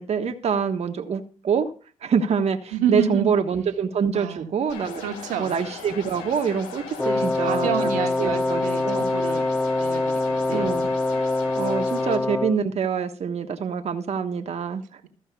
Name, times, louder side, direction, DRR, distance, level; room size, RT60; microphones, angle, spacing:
voice 1, 0.0-1.7 2.0-5.0 5.4-9.0 10.5-10.9 11.2-11.3 11.6-15.0, right 6 dB, 55° right, 6 dB, 1.4 m, -26 dB
voice 2, 2.7-3.3 4.1-4.5 5.0-5.6 7.0-9.5 9.8-10.7, right 8 dB, 85° right, 5 dB, 1.6 m, -29 dB
sound 1, 4.7-12.2, left 6 dB, 90° left, 3.2 m, -39 dB
Wind instrument woodwind instrument, 7.0-12.7, left 2 dB, 10° left, 0.6 m, -24 dB
14.5 x 5.4 x 6.9 m, 0.39 s
supercardioid pair, 55°, 13 cm